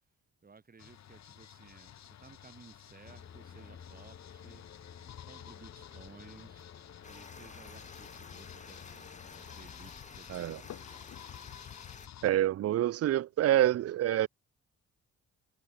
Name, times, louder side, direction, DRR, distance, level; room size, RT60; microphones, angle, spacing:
voice 1, 0.4-4.6 5.2-6.7 7.0-11.1, right 4 dB, 30° right, 3.6 m, -57 dB
sound 1, 0.8-12.3, left 11 dB, 60° left, 1.7 m, -52 dB
sound 2, 3.0-11.5, left 7 dB, 45° left, 2.4 m, -53 dB
sound 3, 7.0-12.1, left 4 dB, 25° left, 1.5 m, -51 dB
voice 2, 12.2-14.3, right 13 dB, 55° right, 0.5 m, -27 dB
cardioid pair, 90°, 30 cm